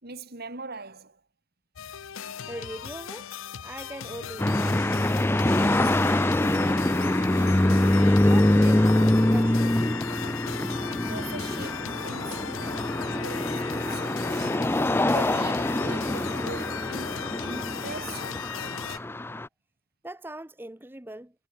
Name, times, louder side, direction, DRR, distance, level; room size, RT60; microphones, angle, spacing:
voice 1, 0.0-1.2 10.9-14.7 15.1-19.1, right 3 dB, 50° right, 3.5 m, -41 dB
sound 1, 1.8-19.0, left 8 dB, 75° left, 0.7 m, -38 dB
voice 2, 2.5-5.0 5.5-7.8 8.2-9.7 20.0-21.3, right 1 dB, 10° right, 1.0 m, -41 dB
sound 2, 4.4-19.5, left 1 dB, 10° left, 0.5 m, -24 dB
head